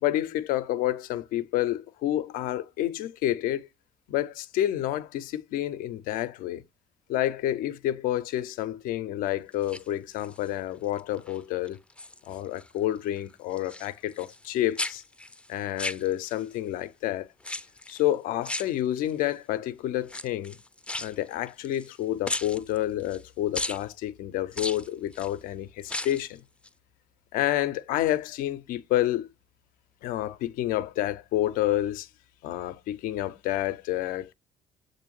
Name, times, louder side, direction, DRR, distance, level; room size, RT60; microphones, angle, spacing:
voice 1, 0.0-3.7 4.1-6.6 7.1-11.8 12.3-15.0 15.5-17.3 17.9-20.6 21.0-26.4 27.3-29.3 30.0-32.1 32.4-34.3, left 13 dB, 75° left, 0.4 m, -29 dB
sound 1, 9.5-10.5 11.0-11.4 11.7-12.7 13.0-14.5 14.8-16.5 17.4-18.0 18.4-19.3 20.0-22.0 22.2-23.2 23.5-23.8 24.5-25.3 25.8-26.3 26.6-26.7, left 2 dB, 5° left, 0.4 m, -36 dB
6.7 x 2.5 x 3.1 m
hypercardioid pair, 60°, 14 cm